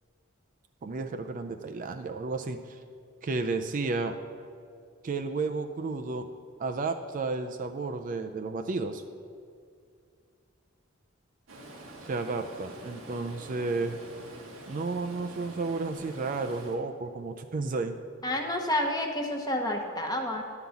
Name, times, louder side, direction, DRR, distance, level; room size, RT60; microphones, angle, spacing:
voice 1, 0.8-2.8 3.2-4.2 5.0-6.2 6.6-9.0 12.0-14.0 14.7-18.0, right 3 dB, 40° right, 6 dB, 0.4 m, -32 dB
Stream, 11.5-16.8, right 1 dB, 85° right, 1.2 m, -46 dB
voice 2, 18.2-20.4, left 1 dB, 20° left, 2 dB, 0.9 m, -29 dB
10.5 x 3.9 x 7.0 m, 2.2 s
head